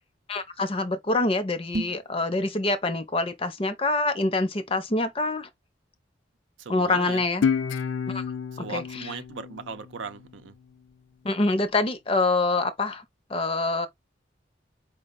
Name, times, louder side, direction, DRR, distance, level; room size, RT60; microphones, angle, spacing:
voice 1, 0.3-5.5 6.7-7.5 8.1-8.2 8.7-9.1 11.2-13.0 13.3-13.9, left 2 dB, 30° left, 0.5 m, -26 dB
sound 1, 1.6-2.1, right 2 dB, 35° right, 0.5 m, -32 dB
voice 2, 6.6-7.2 8.5-10.5, right 5 dB, 80° right, 0.6 m, -38 dB
Guitar, 7.4-10.6, left 6 dB, 85° left, 0.4 m, -30 dB
4.8 x 2.1 x 3.7 m
head